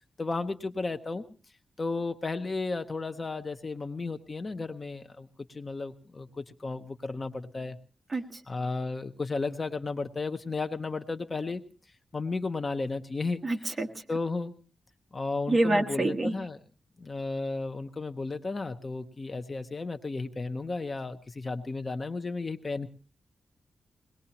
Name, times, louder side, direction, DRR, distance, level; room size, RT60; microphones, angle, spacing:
voice 1, 0.2-1.2 1.8-7.8 8.5-11.6 12.1-13.4 14.1-14.5 15.1-16.6 17.0-22.9, left 3 dB, 30° left, 7 dB, 0.7 m, -33 dB
voice 2, 8.1-8.4 13.4-13.9 15.5-16.3, right 2 dB, 30° right, 3 dB, 1.4 m, -26 dB
22.0 x 19.5 x 2.9 m, 0.36 s
wide cardioid pair, 165°, 0 cm